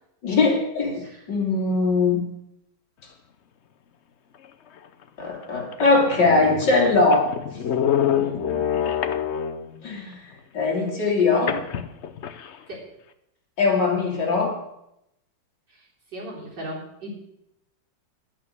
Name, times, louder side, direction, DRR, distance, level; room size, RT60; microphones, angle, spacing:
voice 1, 0.2-2.2 5.2-7.3 8.2-8.5 9.8-10.2 10.5-11.6 13.6-14.5, left 3 dB, 60° left, -1 dB, 3.4 m, -21 dB
sound 1, 4.8-4.9 5.4-5.5 5.7-9.8 11.5-12.6, left 9 dB, 90° left, 0.6 m, -26 dB
voice 2, 15.7-17.2, right 1 dB, 60° right, -4 dB, 4.2 m, -38 dB
10.5 x 9.1 x 6.6 m, 0.81 s
omnidirectional pair, 2.1 m